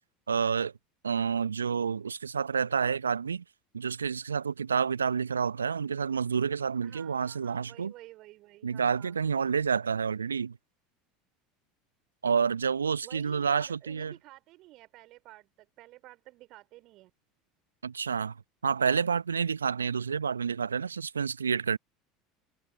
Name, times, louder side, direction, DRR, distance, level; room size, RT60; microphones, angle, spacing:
voice 1, 0.3-0.7 1.0-3.4 3.7-7.9 8.6-10.6 12.2-14.1 17.8-18.3 18.6-21.8, right 6 dB, 80° right, 0.8 m, -29 dB
voice 2, 6.8-9.1 13.0-17.1, right 18 dB, 50° right, 3.9 m, -51 dB
figure-of-eight pair, 70°, 0 cm